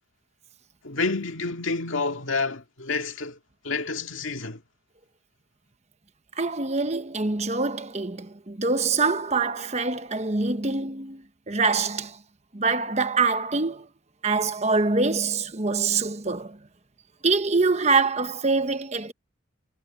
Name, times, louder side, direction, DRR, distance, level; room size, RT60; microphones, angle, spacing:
voice 1, 0.8-3.4 3.6-4.6, left 3 dB, 75° left, 2.1 m, -29 dB
voice 2, 6.4-12.2 12.5-13.9 14.2-16.6 17.2-19.1, right 4 dB, 35° right, 1.1 m, -25 dB
head